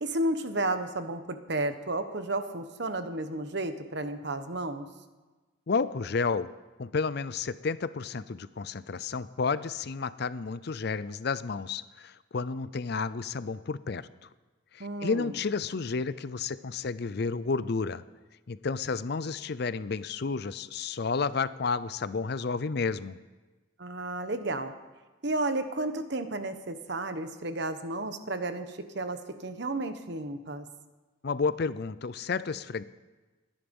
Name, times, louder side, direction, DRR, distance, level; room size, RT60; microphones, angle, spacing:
voice 1, 0.0-4.9 14.8-15.3 23.8-24.7 25.2-30.7, right 2 dB, 55° right, 9 dB, 1.1 m, -32 dB
voice 2, 5.7-6.5 6.8-14.1 14.7-18.0 18.5-23.2 31.2-32.8, left 4 dB, 50° left, 16 dB, 0.5 m, -31 dB
22.0 x 10.5 x 5.4 m, 1.2 s
head